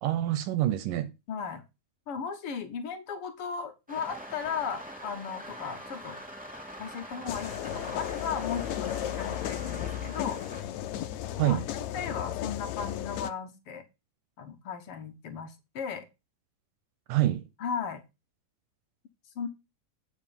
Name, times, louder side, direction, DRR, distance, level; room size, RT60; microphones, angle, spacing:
voice 1, 0.0-1.1 11.4-11.6 17.1-17.4, right 14 dB, 80° right, 2.4 m, -26 dB
voice 2, 1.3-1.6 2.1-6.2 6.8-10.4 11.4-13.8 14.4-16.1 17.6-18.0 19.3-19.5, left 6 dB, 65° left, 1.5 m, -36 dB
sound 1, 3.9-10.6, equal, 5° right, 1.2 m, -44 dB
sound 2, 7.3-13.3, left 12 dB, 80° left, 1.7 m, -35 dB
8.9 x 5.3 x 5.2 m
omnidirectional pair, 3.9 m